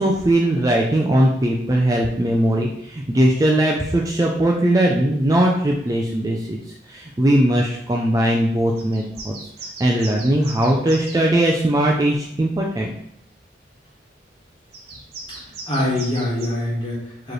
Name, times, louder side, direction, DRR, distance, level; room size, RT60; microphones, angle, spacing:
voice 1, 0.0-6.6 6.9-9.3 9.8-12.9, right 1 dB, 20° right, -1 dB, 0.3 m, -19 dB
sound 1, 8.8-11.2 14.7-16.5, right 3 dB, 55° right, 0.8 m, -37 dB
voice 2, 15.3-17.3, left 1 dB, 25° left, -6 dB, 1.5 m, -25 dB
4.5 x 3.1 x 3.1 m, 0.77 s
head